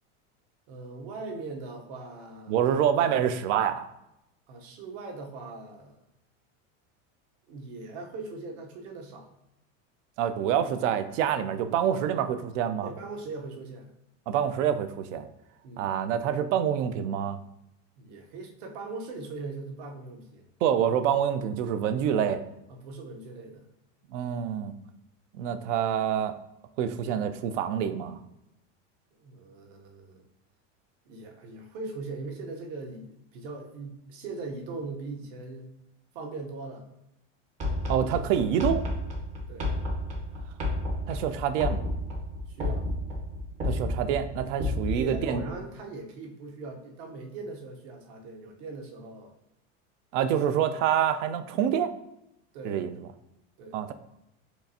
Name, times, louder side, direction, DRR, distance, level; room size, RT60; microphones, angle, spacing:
voice 1, 0.7-2.6 4.5-6.0 7.5-9.3 12.8-13.9 15.6-15.9 18.0-20.4 22.7-23.7 29.2-30.3 31.1-35.7 36.1-36.9 39.5-39.8 42.5-42.9 44.6-49.3 52.5-52.8 53.6-53.8, right 3 dB, 60° right, 3 dB, 0.9 m, -40 dB
voice 2, 2.5-3.8 10.2-12.9 14.3-15.3 15.8-17.4 20.6-22.4 24.1-24.7 25.3-26.4 26.8-28.2 37.9-38.9 41.1-41.8 43.6-45.4 50.1-51.9 52.6-52.9 53.7-53.9, right 9 dB, 75° right, 10 dB, 0.5 m, -26 dB
sound 1, 37.6-45.4, left 1 dB, 20° right, 0.5 m, -32 dB
4.5 x 3.3 x 2.7 m, 0.86 s
supercardioid pair, 165°, 37 cm